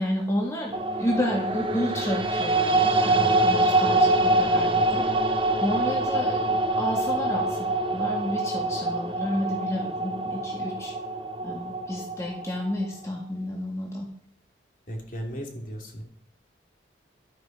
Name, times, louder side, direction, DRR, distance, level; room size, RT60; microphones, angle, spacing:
voice 1, 0.0-10.9 11.4-14.1, left 1 dB, 15° left, -1 dB, 1.7 m, -31 dB
sound 1, 0.7-12.9, right 2 dB, 30° right, 1.1 m, -25 dB
voice 2, 3.9-4.9 14.9-16.0, equal, 45° left, 2 dB, 2.8 m, -37 dB
12.0 x 9.2 x 5.3 m, 0.67 s
head